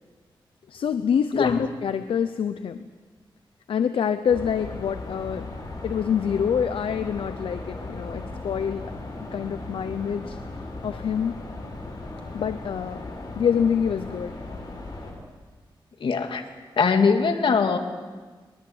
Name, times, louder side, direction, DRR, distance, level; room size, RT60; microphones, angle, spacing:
voice 1, 0.7-2.8 3.7-5.6 5.8-8.9 9.3-10.4 10.8-11.4 12.3-13.0 13.3-14.3, left 7 dB, 90° left, 10 dB, 0.8 m, -26 dB
sound 1, 4.3-15.1, left 2 dB, 50° left, 6.6 m, -37 dB
voice 2, 16.0-16.4 16.8-17.8, left 5 dB, 70° left, 5 dB, 2.3 m, -21 dB
23.0 x 21.0 x 8.0 m, 1.4 s
wide cardioid pair, 90°, 9 cm